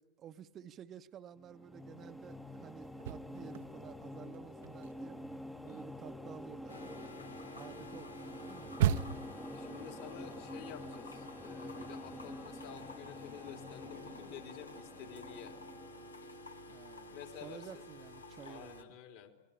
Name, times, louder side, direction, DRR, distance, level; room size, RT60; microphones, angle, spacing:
voice 1, 0.0-5.2 5.6-7.1 7.5-8.9 16.7-19.0, right 9 dB, 30° right, 11 dB, 0.9 m, -52 dB
sound 1, 1.4-16.7, left 1 dB, 5° left, 1.1 m, -48 dB
sound 2, 2.8-4.0 4.3-9.4, right 10 dB, 55° right, 0.8 m, -36 dB
sound 3, 6.7-18.8, left 2 dB, 75° left, 1.8 m, -51 dB
voice 2, 9.5-15.6 17.1-17.9 18.4-19.3, left 8 dB, 50° left, 4 dB, 3.4 m, -50 dB
27.5 x 22.0 x 8.8 m, 1.1 s
figure-of-eight pair, 90°, 0 cm